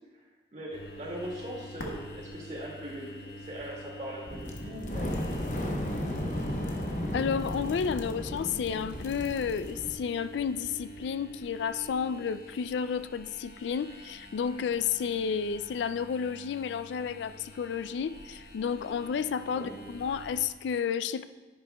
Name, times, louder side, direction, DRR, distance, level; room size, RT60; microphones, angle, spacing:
voice 1, 0.5-5.1 5.5-5.7 6.2-6.4 19.5-19.7, right 1 dB, 40° right, -3 dB, 2.1 m, -40 dB
sound 1, 0.7-20.5, equal, 60° left, 1.2 m, -46 dB
sound 2, 4.3-9.9, left 1 dB, 45° left, 0.9 m, -34 dB
voice 2, 7.1-21.2, left 7 dB, 90° left, 14 dB, 0.3 m, -31 dB
10.5 x 10.0 x 2.3 m, 1.3 s
head